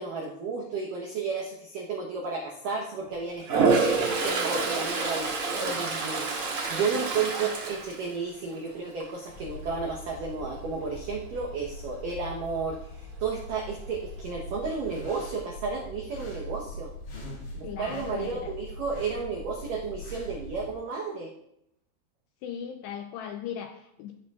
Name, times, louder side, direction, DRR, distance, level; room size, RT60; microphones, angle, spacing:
voice 1, 0.0-16.9 17.5-21.3, right 4 dB, 90° right, -1 dB, 1.9 m, -33 dB
Toilet flush, 3.4-8.6 9.0-9.4 13.8-13.9 14.2-14.9, right 4 dB, 60° right, 1.5 m, -28 dB
sound 1, 9.3-20.8, equal, 45° left, 2.8 m, -42 dB
voice 2, 17.6-18.5 22.4-24.1, left 8 dB, 85° left, 5 dB, 2.4 m, -38 dB
13.5 x 11.0 x 2.4 m, 0.76 s
omnidirectional pair, 5.5 m